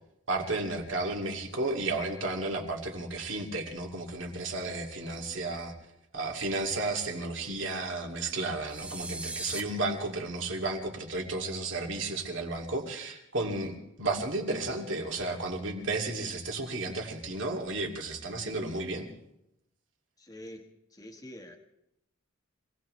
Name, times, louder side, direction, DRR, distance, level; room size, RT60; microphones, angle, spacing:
voice 1, 0.3-5.7 6.1-19.1, right 2 dB, 60° right, 1 dB, 2.3 m, -33 dB
sound 1, 8.7-9.6, right 2 dB, 5° right, 0.6 m, -38 dB
voice 2, 20.2-21.6, left 1 dB, 15° left, 4 dB, 1.4 m, -46 dB
25.5 x 17.5 x 3.2 m, 0.84 s
head